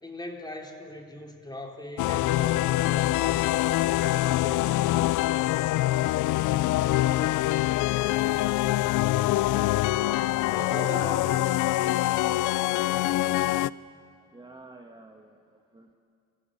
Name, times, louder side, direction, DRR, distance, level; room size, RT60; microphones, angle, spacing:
voice 1, 0.0-5.1 10.5-12.0, left 1 dB, 15° left, 1 dB, 3.5 m, -40 dB
sound 1, 2.0-13.7, left 16 dB, 85° left, 0.5 m, -24 dB
voice 2, 10.6-11.2 14.3-15.9, right 2 dB, 15° right, 3 dB, 1.5 m, -46 dB
26.5 x 15.5 x 8.7 m, 2.4 s
cardioid pair, 90°, 30 cm